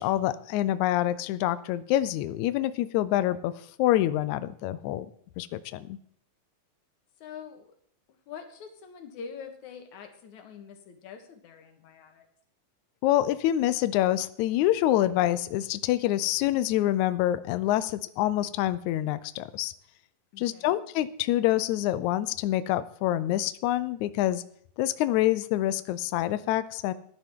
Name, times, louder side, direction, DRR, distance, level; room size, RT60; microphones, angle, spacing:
voice 1, 0.0-3.5 3.8-5.1 5.4-6.0 13.0-19.7 20.4-24.4 24.8-26.9, left 13 dB, 90° left, 14 dB, 1.6 m, -26 dB
voice 2, 7.2-7.7 8.1-12.3 20.3-20.8, left 6 dB, 65° left, 5 dB, 2.6 m, -45 dB
15.5 x 10.5 x 3.7 m, 0.62 s
omnidirectional pair, 4.0 m